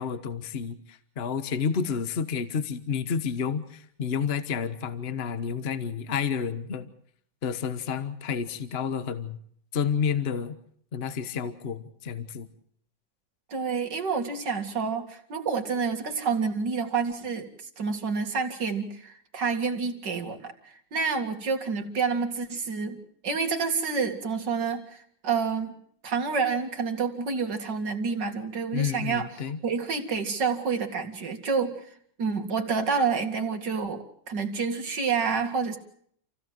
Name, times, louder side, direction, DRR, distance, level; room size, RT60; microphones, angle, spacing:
voice 1, 0.0-6.9 7.4-9.4 9.7-10.6 10.9-12.5 28.7-29.6, left 6 dB, 35° left, 11 dB, 1.3 m, -30 dB
voice 2, 13.5-17.5 17.8-23.0 23.2-25.7 26.0-29.3 29.6-31.9 32.2-35.8, right 5 dB, 60° right, 5 dB, 2.8 m, -28 dB
28.0 x 16.0 x 7.8 m, 0.65 s
omnidirectional pair, 2.2 m